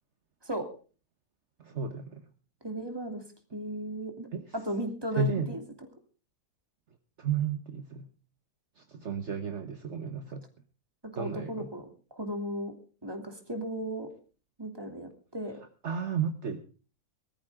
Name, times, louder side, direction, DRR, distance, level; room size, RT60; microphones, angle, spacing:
voice 1, 1.6-2.2 4.3-4.5 5.2-5.5 7.2-8.1 8.8-10.4 11.2-11.7 15.8-16.6, right 6 dB, 50° right, 7 dB, 1.4 m, -32 dB
voice 2, 2.6-3.2 3.5-4.3 4.5-5.6 11.1-12.7 13.0-14.1 14.6-15.6, right 1 dB, 15° right, 4 dB, 2.9 m, -35 dB
20.5 x 13.5 x 3.7 m, 0.37 s
omnidirectional pair, 1.6 m